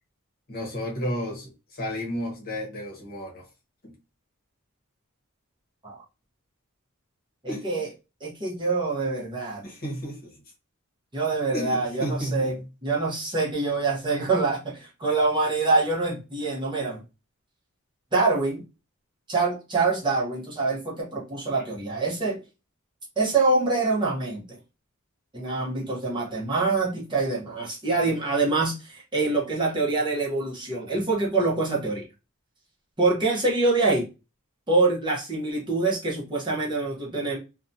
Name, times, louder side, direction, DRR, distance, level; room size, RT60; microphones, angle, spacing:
voice 1, 0.5-3.4 3.8-3.9 7.5-7.9 9.6-10.4 11.5-12.5, equal, 45° left, 0.9 m, -32 dB
voice 2, 7.4-7.9 8.2-9.6 11.1-17.0 18.1-18.6 19.3-22.4 23.2-24.6 25.3-32.0 33.0-34.1 34.7-37.4, right 3 dB, 20° right, 0.7 m, -25 dB
2.6 x 2.2 x 2.5 m
head